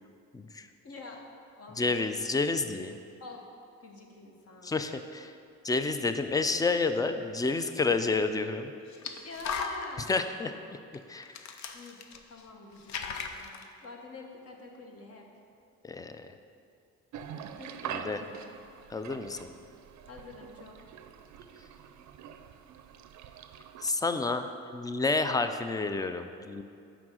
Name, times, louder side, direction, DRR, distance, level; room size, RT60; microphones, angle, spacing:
voice 1, 0.3-0.7 1.8-3.0 4.6-5.3 5.6-8.7 10.1-10.5 11.1-11.5 15.8-16.3 17.9-18.2 18.9-19.4 23.8-26.6, left 3 dB, 15° left, 9 dB, 0.3 m, -30 dB
voice 2, 0.8-1.2 1.6-2.0 3.2-3.4 3.8-4.8 9.2-10.1 11.7-12.0 12.3-15.3 17.6-18.5 20.1-20.9, left 3 dB, 50° left, 2 dB, 1.2 m, -46 dB
sound 1, 7.6-7.7 8.9-10.2 10.9-11.0 11.2-12.5 12.8-13.7, left 6 dB, 65° left, 0.6 m, -38 dB
sound 2, 17.1-23.9, right 8 dB, 70° right, 0.5 m, -44 dB
6.0 x 4.9 x 6.3 m, 2.5 s
cardioid pair, 90°, 30 cm